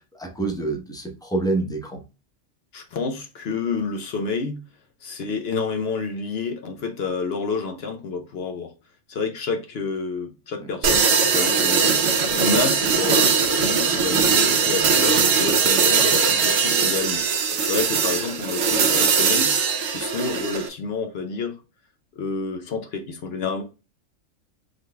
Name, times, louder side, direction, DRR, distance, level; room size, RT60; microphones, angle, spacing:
voice 1, 0.0-2.0 10.6-10.7, right 3 dB, 5° left, 0.6 m, -27 dB
voice 2, 2.7-4.6 5.0-8.7 9.1-17.3 17.6-19.5 19.9-21.6 22.2-23.6, left 4 dB, 60° left, 0.8 m, -29 dB
sound 1, 10.8-20.7, right 5 dB, 90° right, 1.2 m, -20 dB
4.8 x 3.8 x 2.2 m
omnidirectional pair, 1.3 m